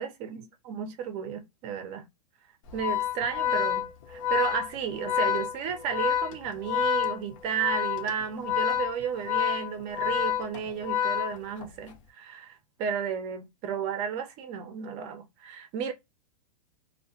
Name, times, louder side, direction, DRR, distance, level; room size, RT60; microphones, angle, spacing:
voice 1, 0.0-2.1 2.7-15.9, right 7 dB, 30° right, 0.5 m, -33 dB
Organ, 2.7-11.9, left 9 dB, 55° left, 0.7 m, -29 dB
2.2 x 2.1 x 2.7 m
hypercardioid pair, 145°, 20 cm